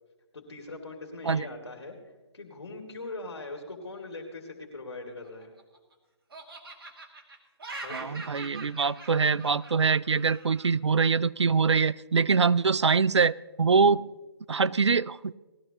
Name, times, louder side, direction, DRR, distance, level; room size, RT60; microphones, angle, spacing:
voice 1, 0.3-5.5 7.8-8.2 13.7-13.9, left 2 dB, 65° left, 2 dB, 2.5 m, -41 dB
Laughter, 5.1-5.9 6.3-10.7, right 3 dB, 55° right, 2.4 m, -43 dB
voice 2, 7.9-14.0 14.5-15.3, right 5 dB, 85° right, 19 dB, 0.4 m, -24 dB
19.0 x 14.0 x 2.9 m, 1.2 s
figure-of-eight pair, 145°, 14 cm